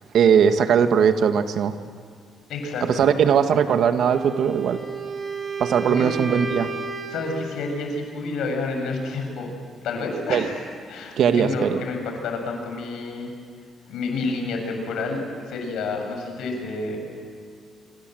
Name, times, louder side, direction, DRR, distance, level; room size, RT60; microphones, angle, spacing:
voice 1, 0.1-1.7 2.9-4.8 5.6-6.7 10.3-10.5 11.2-11.8, right 7 dB, 70° right, 8 dB, 1.7 m, -19 dB
voice 2, 2.5-3.0 5.9-6.1 7.1-9.5 9.8-10.6 10.9-13.3 13.9-15.2 15.5-17.0, left 3 dB, 80° left, 3 dB, 6.8 m, -29 dB
Wind instrument woodwind instrument, 4.0-7.5, right 4 dB, 40° right, 2.7 m, -32 dB
26.5 x 26.5 x 7.9 m, 2.2 s
cardioid pair, 90°, 0 cm